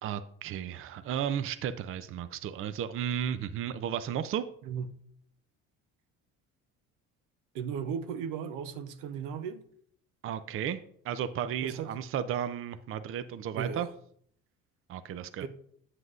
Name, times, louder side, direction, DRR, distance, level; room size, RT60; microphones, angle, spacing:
voice 1, 0.0-4.4 10.2-13.9 14.9-15.5, right 9 dB, 45° right, 0.5 m, -34 dB
voice 2, 7.5-9.6 11.6-11.9 13.5-13.9 15.4-15.5, right 7 dB, 80° right, 0.7 m, -36 dB
8.0 x 7.5 x 2.5 m
supercardioid pair, 90°, 30 cm